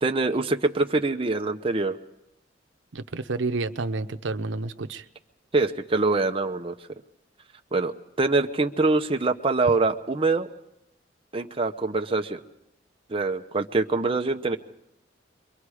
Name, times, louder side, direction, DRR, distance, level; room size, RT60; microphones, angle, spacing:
voice 1, 0.0-2.0 5.5-6.8 7.7-7.9 8.2-10.5 11.3-12.4 13.1-14.6, right 3 dB, 30° right, 5 dB, 0.8 m, -24 dB
voice 2, 2.9-5.0, right 3 dB, 85° right, 7 dB, 0.8 m, -30 dB
29.5 x 23.0 x 4.9 m, 0.82 s
head